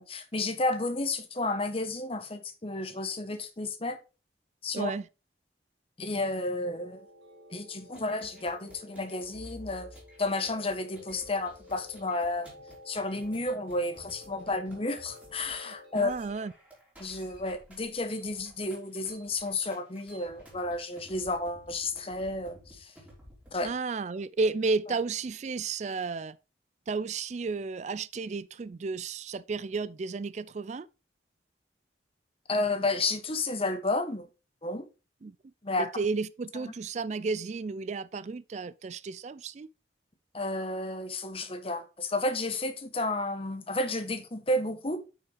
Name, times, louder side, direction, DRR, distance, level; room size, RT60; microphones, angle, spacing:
voice 1, 0.0-4.0 4.6-4.9 6.0-7.1 7.5-9.9 10.2-12.5 12.9-16.1 17.0-22.9 23.5-23.7 32.5-34.3 34.6-34.8 35.6-35.9 36.6-36.7 40.3-45.0, left 2 dB, 30° left, 1.1 m, -32 dB
voice 2, 4.7-5.0 16.0-16.5 23.6-26.4 26.9-30.9 35.2-35.4 35.8-39.7, right 4 dB, 40° right, 0.4 m, -32 dB
sound 1, 6.6-16.5, left 2 dB, 75° right, 2.9 m, -52 dB
sound 2, 7.8-23.7, equal, 10° right, 3.4 m, -54 dB
9.3 x 5.5 x 3.4 m
head